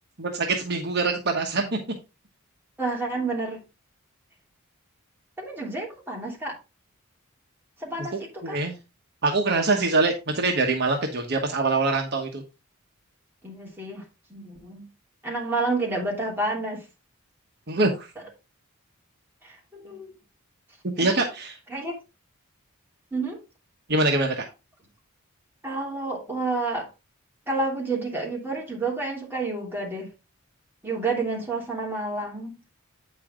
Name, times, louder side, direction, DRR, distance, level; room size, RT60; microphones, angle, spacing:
voice 1, 0.2-1.8 8.1-8.8 9.2-12.4 17.7-18.1 20.8-21.6 23.9-24.5, right 3 dB, 50° right, 1.2 m, -24 dB
voice 2, 2.8-3.6 5.4-6.6 7.8-8.6 13.4-14.0 14.3-14.9 15.2-16.8 19.4-20.1 21.0-21.2 21.7-21.9 23.1-23.4 25.6-26.9 27.5-30.1 30.8-32.6, right 3 dB, 10° right, 2.9 m, -29 dB
8.9 x 5.6 x 3.7 m
head